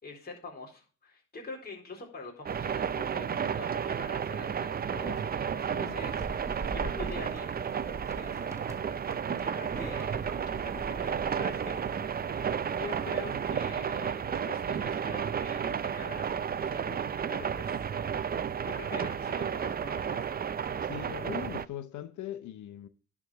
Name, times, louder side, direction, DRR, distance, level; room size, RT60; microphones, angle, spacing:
voice 1, 0.0-7.6 7.9-9.0 9.3-10.4 10.7-11.8 12.8-17.8 18.6-20.3, left 3 dB, 30° left, 4.1 m, -45 dB
sound 1, 2.5-21.7, right 7 dB, 30° right, 0.5 m, -32 dB
sound 2, 6.0-13.7, right 2 dB, 10° right, 1.4 m, -44 dB
voice 2, 20.8-22.9, left 12 dB, 75° left, 0.8 m, -40 dB
10.5 x 5.0 x 6.2 m
cardioid pair, 90°, 30 cm